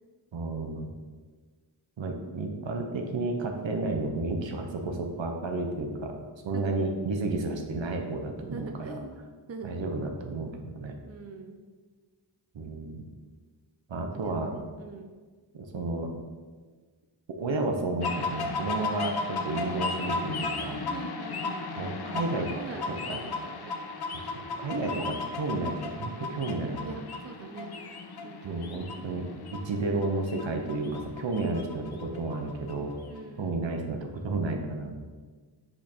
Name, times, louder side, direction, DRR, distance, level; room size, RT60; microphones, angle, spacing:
voice 1, 0.3-0.9 2.0-6.2 6.4-9.0 9.6-10.9 12.5-13.0 13.9-14.5 15.5-16.1 17.4-20.8 21.8-22.5 23.1-23.2 24.1-24.2 24.6-26.9 28.4-32.9 33.4-35.0, right 2 dB, 75° right, 3 dB, 0.9 m, -32 dB
voice 2, 8.5-9.2 9.5-9.7 11.0-11.6 14.1-15.1 20.9-23.7 26.9-27.7 28.2-28.7 33.1-33.8, right 4 dB, 35° right, 4 dB, 0.6 m, -43 dB
sound 1, 18.0-33.2, left 3 dB, 55° left, 0.7 m, -35 dB
5.2 x 4.4 x 4.3 m, 1.4 s
wide cardioid pair, 60°, 46 cm